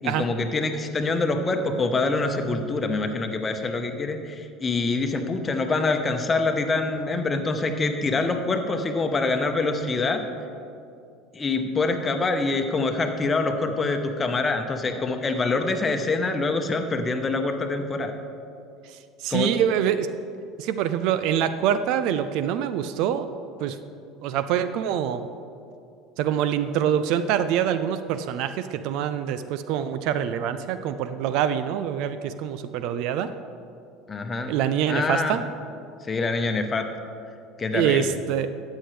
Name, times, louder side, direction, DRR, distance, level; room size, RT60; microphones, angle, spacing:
voice 1, 0.0-10.2 11.3-18.1 19.3-19.6 34.1-34.6 34.9-35.4 36.0-36.9 37.6-38.2, left 3 dB, 25° left, 5 dB, 0.9 m, -25 dB
voice 2, 19.2-20.1 20.6-23.3 23.6-23.8 24.2-25.3 26.2-33.3 34.5-35.4 37.7-38.5, right 9 dB, 60° right, 12 dB, 0.4 m, -25 dB
13.0 x 8.3 x 3.3 m, 2.5 s
hypercardioid pair, 70°, 0 cm